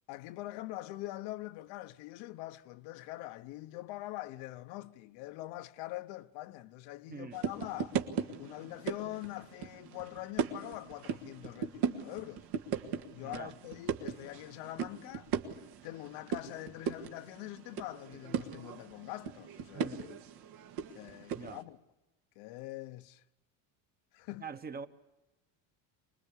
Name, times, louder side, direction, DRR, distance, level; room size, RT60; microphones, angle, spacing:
voice 1, 0.1-8.0 8.4-12.4 13.1-15.3 15.8-20.2 20.9-21.8 22.4-23.2 24.1-24.4, left 17 dB, 80° left, 1.0 m, -44 dB
sound 1, 7.3-21.6, right 7 dB, 75° right, 1.8 m, -38 dB
voice 2, 13.2-13.5 19.7-20.1 21.3-21.6 24.4-24.9, right 5 dB, 25° right, 1.0 m, -43 dB
25.0 x 21.0 x 8.4 m
cardioid pair, 140°, 40 cm